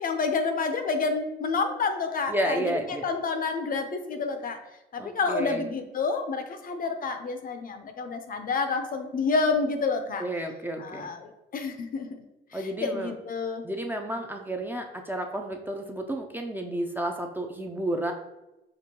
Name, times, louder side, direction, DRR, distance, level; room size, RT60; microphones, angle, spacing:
voice 1, 0.0-2.6 3.0-4.6 4.9-10.2 10.8-11.2 11.5-12.1 12.8-13.6, left 4 dB, 45° left, 6 dB, 0.5 m, -28 dB
voice 2, 2.3-3.1 5.0-5.7 10.2-11.1 12.5-13.1 13.6-18.1, right 1 dB, 10° right, 3 dB, 0.4 m, -31 dB
5.2 x 2.4 x 2.8 m, 0.96 s
cardioid pair, 90°, 20 cm